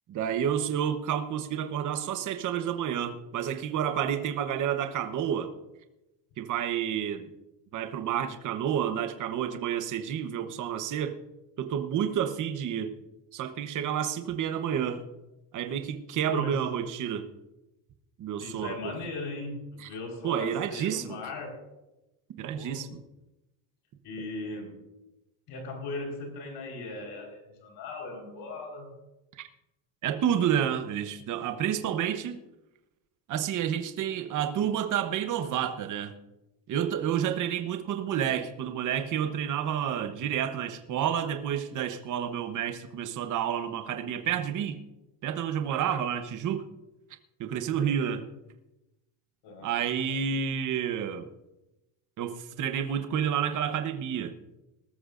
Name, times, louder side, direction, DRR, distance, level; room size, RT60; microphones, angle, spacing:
voice 1, 0.1-5.5 6.4-7.3 7.7-11.2 11.6-13.0 13.3-15.0 15.5-17.3 18.2-19.0 19.8-19.9 20.2-21.2 22.4-23.0 29.4-29.5 30.0-32.4 33.3-36.1 36.7-44.8 45.2-46.7 47.4-48.2 49.6-51.3 52.2-54.4, right 9 dB, 40° right, 8 dB, 1.0 m, -30 dB
voice 2, 16.3-16.6 18.4-21.6 22.5-22.9 24.0-24.8 25.5-28.9 47.8-48.0 49.4-49.7, left 3 dB, 60° left, 2 dB, 4.6 m, -38 dB
20.0 x 13.5 x 2.6 m, 0.97 s
cardioid pair, 135°, 45 cm